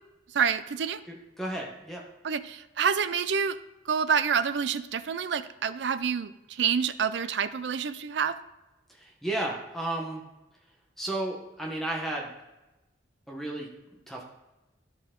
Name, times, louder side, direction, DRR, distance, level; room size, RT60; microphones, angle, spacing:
voice 1, 0.3-1.0 2.2-3.6 3.9-8.4, right 7 dB, 70° right, 13 dB, 0.4 m, -27 dB
voice 2, 1.1-2.0 8.9-10.2 11.0-12.3 13.3-13.7 14.1-14.2, right 1 dB, ahead, -1 dB, 0.9 m, -33 dB
12.0 x 4.4 x 3.7 m, 1.0 s
head